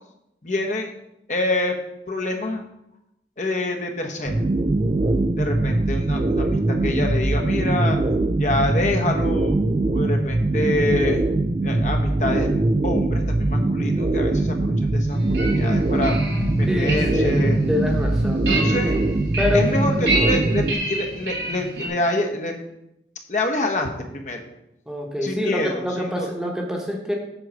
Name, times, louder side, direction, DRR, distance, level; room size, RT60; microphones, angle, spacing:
voice 1, 0.4-0.9 1.3-1.8 2.1-2.6 3.4-4.4 5.4-8.0 8.3-9.6 9.9-11.2 11.6-16.2 16.6-17.6 18.3-18.9 19.5-22.5 23.3-24.5 25.2-26.3, left 2 dB, 45° left, 3 dB, 1.0 m, -26 dB
sound 1, 4.2-20.7, right 2 dB, 30° right, 0.4 m, -22 dB
sound 2, 15.1-21.9, right 1 dB, 85° right, 3.6 m, -28 dB
voice 2, 16.7-17.4 17.7-18.8 19.4-19.7 20.1-20.2 24.9-27.1, left 1 dB, 5° right, 0 dB, 1.1 m, -26 dB
7.7 x 4.6 x 6.3 m, 0.85 s
head